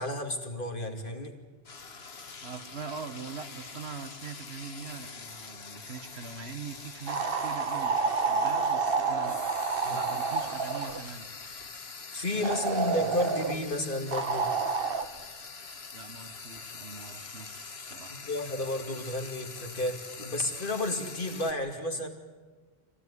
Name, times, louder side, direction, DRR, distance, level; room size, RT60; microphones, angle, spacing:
voice 1, 0.0-1.3 9.8-10.1 12.1-14.5 18.1-22.1, left 1 dB, 55° left, 3 dB, 2.7 m, -32 dB
Frying (food), 1.6-21.5, left 4 dB, 75° left, 1.6 m, -45 dB
voice 2, 2.4-9.4 9.9-11.3 12.3-13.2 15.9-18.2, right 5 dB, 80° right, 9 dB, 1.6 m, -43 dB
sound 1, 7.1-11.0 12.4-13.6 14.1-15.1, right 4 dB, 65° right, 1.4 m, -29 dB
25.5 x 17.0 x 9.9 m, 1.4 s
omnidirectional pair, 1.1 m